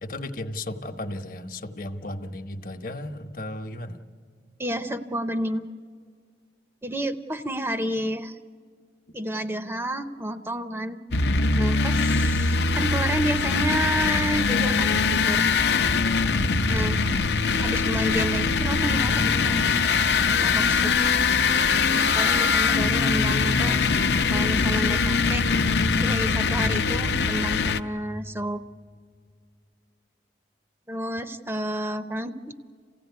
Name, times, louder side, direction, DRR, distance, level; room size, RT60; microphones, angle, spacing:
voice 1, 0.0-4.0, left 1 dB, 50° left, 8 dB, 1.0 m, -35 dB
voice 2, 4.6-5.7 6.8-8.4 9.1-11.0 11.6-15.4 16.7-17.0 17.6-19.8 20.4-20.9 22.1-23.8 24.3-25.5 26.0-28.6 30.9-32.4, equal, 15° right, 9 dB, 0.6 m, -30 dB
sound 1, 11.1-27.8, left 4 dB, 70° left, 0.7 m, -22 dB
27.5 x 16.0 x 9.3 m, 2.1 s
head